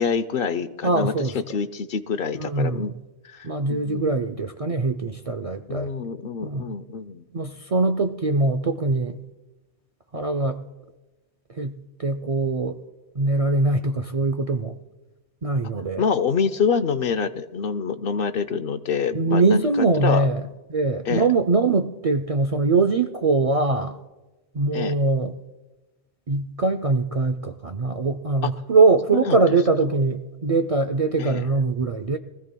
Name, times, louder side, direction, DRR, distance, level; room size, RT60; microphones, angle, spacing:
voice 1, 0.0-2.9 3.2-4.2 5.7-7.2 16.0-20.3 21.1-21.2 24.7-24.9 28.4-28.5 29.1-29.4 31.2-31.5, left 6 dB, 60° left, 12 dB, 0.8 m, -26 dB
voice 2, 0.8-1.3 2.3-3.0 3.4-5.9 6.4-6.7 7.3-9.2 10.1-10.6 11.5-12.8 13.2-14.8 15.4-16.0 19.1-20.4 20.7-24.0 24.5-25.3 26.3-32.2, right 3 dB, 50° right, 7 dB, 0.4 m, -22 dB
23.0 x 15.0 x 2.2 m, 1.1 s
omnidirectional pair, 1.1 m